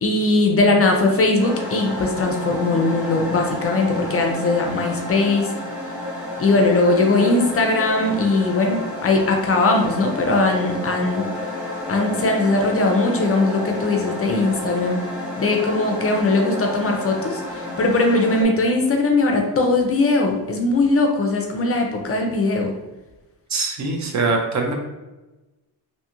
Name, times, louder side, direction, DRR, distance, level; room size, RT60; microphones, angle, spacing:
voice 1, 0.0-5.5 6.4-11.2 11.9-15.0 15.4-17.4 17.8-22.7, left 2 dB, 35° left, 2 dB, 0.4 m, -20 dB
sound 1, 1.4-18.4, left 1 dB, 5° right, 1.1 m, -30 dB
voice 2, 23.5-24.7, right 3 dB, 45° right, 1 dB, 0.5 m, -22 dB
2.6 x 2.3 x 2.9 m, 1.1 s
cardioid pair, 110°, 40 cm